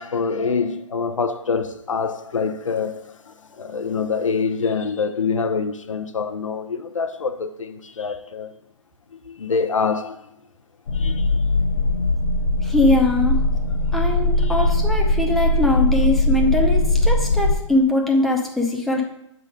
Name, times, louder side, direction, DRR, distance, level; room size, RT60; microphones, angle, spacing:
voice 1, 0.0-8.5 9.1-10.2 10.9-11.4 14.4-14.7, left 5 dB, 85° left, 0.6 m, -26 dB
sound 1, 10.9-17.5, left 2 dB, 60° left, 0.9 m, -20 dB
voice 2, 12.6-13.4 13.9-19.0, left 2 dB, ahead, 0.6 m, -21 dB
7.2 x 3.9 x 5.0 m
figure-of-eight pair, 135°, 16 cm